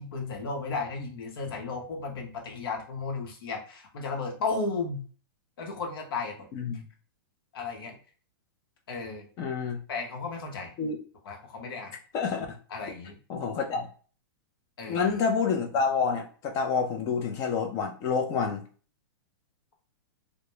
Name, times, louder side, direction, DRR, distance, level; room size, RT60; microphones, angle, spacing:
voice 1, 0.0-5.1 5.6-6.5 7.5-8.0 8.9-9.3 9.9-10.7 11.2-11.9 12.7-13.2 14.8-15.2, left 4 dB, 75° left, 0.8 m, -34 dB
voice 2, 6.5-6.8 9.4-9.8 10.8-11.0 12.1-12.5 13.3-13.9 14.9-18.7, left 5 dB, 25° left, 0.4 m, -28 dB
2.1 x 2.0 x 3.0 m
hypercardioid pair, 155°, 12 cm